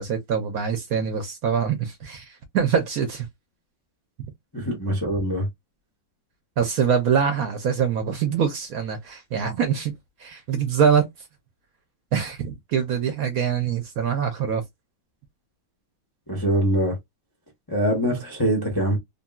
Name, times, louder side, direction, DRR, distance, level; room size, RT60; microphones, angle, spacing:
voice 1, 0.0-3.3 4.2-4.3 6.6-9.9 10.2-11.1 12.1-14.6, right 7 dB, 65° right, 1.0 m, -24 dB
voice 2, 4.5-5.5 16.3-17.0 17.7-19.0, equal, 25° left, 0.4 m, -23 dB
3.0 x 2.6 x 2.2 m
omnidirectional pair, 2.0 m